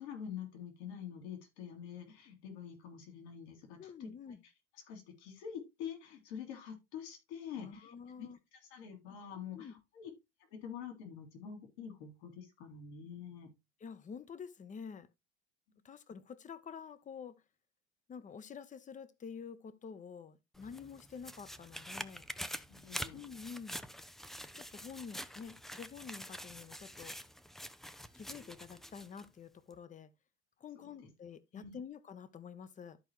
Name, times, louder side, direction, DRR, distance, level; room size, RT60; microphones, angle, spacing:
voice 1, 0.0-4.1 4.9-8.3 8.7-10.1 10.5-13.5 22.7-23.2 31.0-31.1 31.5-31.8, left 8 dB, 70° left, 2.9 m, -46 dB
voice 2, 3.8-4.4 7.6-8.4 9.5-9.7 13.8-15.1 15.8-17.4 18.1-22.3 23.1-23.8 24.5-27.2 28.1-30.1 30.6-33.0, left 6 dB, 20° left, 0.8 m, -48 dB
sound 1, 20.5-29.3 29.7-29.8, equal, ahead, 0.4 m, -46 dB
13.0 x 4.5 x 3.0 m
hypercardioid pair, 90°, 35 cm